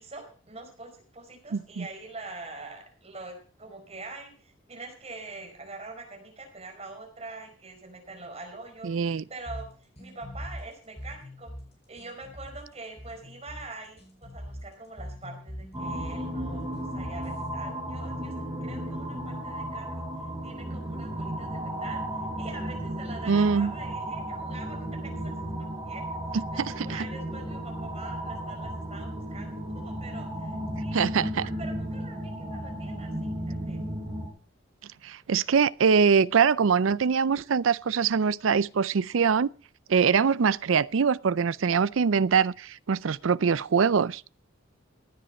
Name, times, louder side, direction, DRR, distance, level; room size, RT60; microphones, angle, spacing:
voice 1, 0.0-9.7 10.0-11.5 11.9-18.3 18.6-20.0 20.4-22.0 22.4-25.3 25.6-26.0 26.5-33.8, right 3 dB, 30° right, 5.0 m, -44 dB
voice 2, 1.5-1.9 8.8-9.2 23.3-23.7 26.3-27.1 30.9-31.4 35.0-39.5 39.9-44.2, right 6 dB, 80° right, 0.5 m, -23 dB
sound 1, 9.5-17.5, equal, 30° left, 5.7 m, -42 dB
sound 2, 15.7-34.3, right 1 dB, 15° right, 4.0 m, -34 dB
16.0 x 10.0 x 4.3 m
head